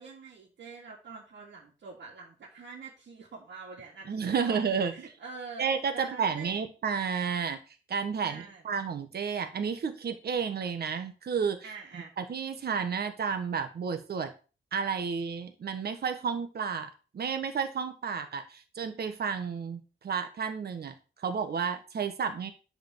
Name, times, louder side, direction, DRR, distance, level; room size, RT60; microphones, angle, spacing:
voice 1, 0.0-4.6 4.9-6.6 8.2-8.6 11.6-12.1, right 4 dB, 75° right, -3 dB, 3.0 m, -46 dB
voice 2, 4.1-4.9 5.6-11.6 12.2-14.3 14.7-22.5, right 6 dB, 60° right, 8 dB, 1.4 m, -31 dB
11.0 x 5.0 x 7.3 m, 0.34 s
wide cardioid pair, 145°, 19 cm